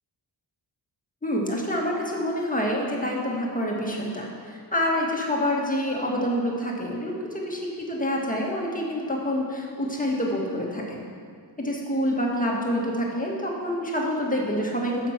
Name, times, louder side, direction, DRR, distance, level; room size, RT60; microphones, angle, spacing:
voice 1, 1.2-11.1 11.6-15.1, equal, 20° left, -2 dB, 1.7 m, -27 dB
10.5 x 7.3 x 5.9 m, 2.1 s
wide cardioid pair, 105°, 45 cm